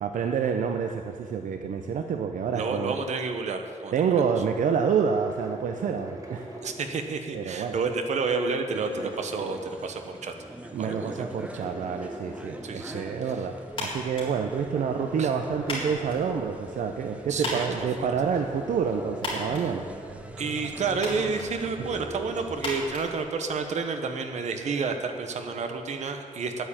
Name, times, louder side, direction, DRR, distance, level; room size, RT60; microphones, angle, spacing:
voice 1, 0.0-2.9 3.9-6.5 7.3-7.8 10.7-19.9, right 6 dB, 85° right, 6 dB, 0.7 m, -28 dB
voice 2, 2.5-4.1 6.6-10.3 10.8-11.3 12.6-13.0 15.2-15.3 17.3-18.1 19.6-19.7 20.4-26.7, right 4 dB, 60° right, 6 dB, 1.2 m, -30 dB
sound 1, 5.0-7.6 8.0-10.4 10.8-13.4 13.8-16.9 17.4-17.5 17.9-23.1 23.5-23.6, right 1 dB, 25° right, 1.8 m, -43 dB
sound 2, 8.7-22.8, right 1 dB, 10° right, 0.8 m, -42 dB
sound 3, 13.7-23.9, left 2 dB, 40° left, 3.7 m, -39 dB
9.9 x 9.2 x 8.7 m, 2.1 s
wide cardioid pair, 180°, 13 cm